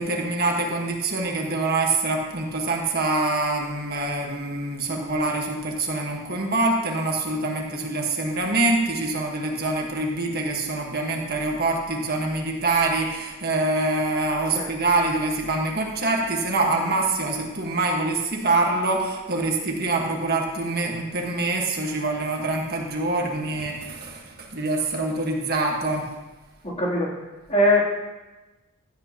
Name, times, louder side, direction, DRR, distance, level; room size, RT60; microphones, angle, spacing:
voice 1, 0.0-26.1, right 2 dB, 50° right, 0 dB, 1.6 m, -25 dB
voice 2, 26.6-27.1 27.5-27.8, left 1 dB, 30° left, -5 dB, 3.3 m, -21 dB
16.0 x 11.0 x 3.0 m, 1.1 s
head